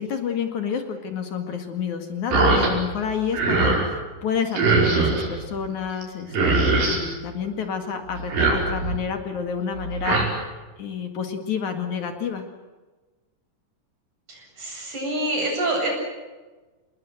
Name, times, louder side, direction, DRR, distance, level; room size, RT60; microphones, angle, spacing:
voice 1, 0.0-10.5 10.8-12.4, left 7 dB, 60° left, 6 dB, 3.3 m, -29 dB
sound 1, 2.3-2.7 3.1-3.8 4.5-5.3 6.0-6.1 6.3-7.0 8.1-9.0 9.8-10.3, right 3 dB, 75° right, 7.0 m, -21 dB
voice 2, 14.3-15.9, right 1 dB, 55° right, 1 dB, 9.3 m, -26 dB
27.5 x 20.5 x 7.9 m, 1.2 s
omnidirectional pair, 4.0 m